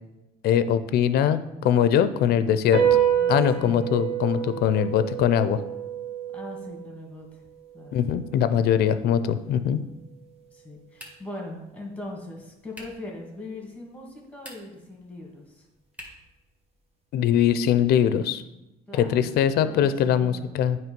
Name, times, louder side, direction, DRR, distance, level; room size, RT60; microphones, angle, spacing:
voice 1, 0.4-2.8 3.3-5.6 7.9-9.8 17.1-18.4 18.9-20.8, left 9 dB, 70° left, 12 dB, 0.5 m, -22 dB
sound 1, 2.7-9.4, right 9 dB, 35° right, 1.4 m, -28 dB
voice 2, 3.2-3.7 6.3-7.4 7.7-8.0 9.6-10.0 10.5-15.7 18.9-20.5, left 2 dB, 10° left, -1 dB, 1.9 m, -41 dB
sound 2, 10.9-11.4 12.7-13.1 14.3-14.9 15.9-16.3, equal, 10° right, 1.8 m, -45 dB
9.0 x 3.1 x 5.2 m, 0.97 s
cardioid pair, 110°, 17 cm